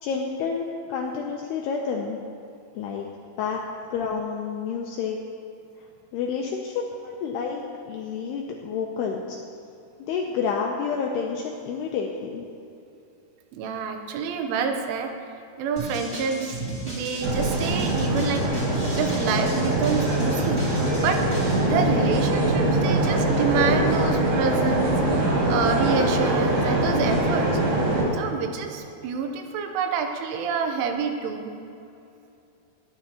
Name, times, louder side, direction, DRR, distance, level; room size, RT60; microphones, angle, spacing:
voice 1, 0.0-2.2 2.8-3.1 3.4-3.6 3.9-5.2 6.1-7.6 7.9-9.4 10.1-12.4, left 6 dB, 85° left, 0 dB, 2.4 m, -29 dB
voice 2, 13.5-15.1 15.6-18.5 18.9-20.7 21.0-21.3 21.6-25.2 25.5-27.5 28.1-31.5, right 5 dB, 85° right, 5 dB, 3.4 m, -27 dB
sound 1, 15.8-21.7, right 1 dB, 25° right, 1.4 m, -34 dB
sound 2, 17.2-28.1, right 1 dB, 60° right, 4.2 m, -23 dB
21.5 x 10.0 x 3.0 m, 2.7 s
omnidirectional pair, 5.5 m